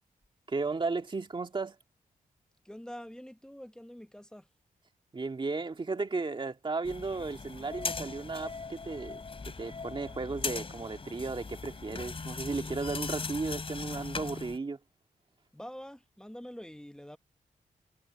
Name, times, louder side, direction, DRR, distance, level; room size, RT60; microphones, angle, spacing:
voice 1, 0.5-1.8 5.1-14.8, right 3 dB, 35° right, 2.2 m, -35 dB
voice 2, 2.6-4.5 15.5-17.2, equal, 5° left, 1.2 m, -45 dB
sound 1, 6.8-14.6, left 4 dB, 40° left, 2.9 m, -39 dB
cardioid pair, 95°, 15 cm